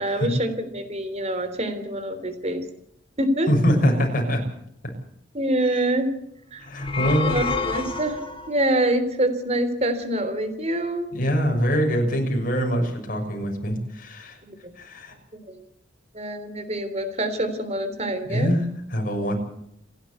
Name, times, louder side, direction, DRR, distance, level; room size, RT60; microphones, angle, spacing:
voice 1, 0.0-2.6 3.2-3.5 5.3-6.1 6.5-6.7 7.2-8.2 8.5-11.2 14.4-14.6 15.5-15.6 16.1-18.5, right 1 dB, 35° right, 10 dB, 3.4 m, -25 dB
voice 2, 3.5-4.4 4.8-4.9 5.7-5.8 6.6-7.3 11.1-14.4 14.8-15.1 18.3-19.4, equal, 45° left, 3 dB, 6.3 m, -23 dB
sound 1, 6.7-8.6, left 4 dB, 25° left, 2.1 m, -28 dB
28.5 x 11.5 x 8.2 m, 0.74 s
head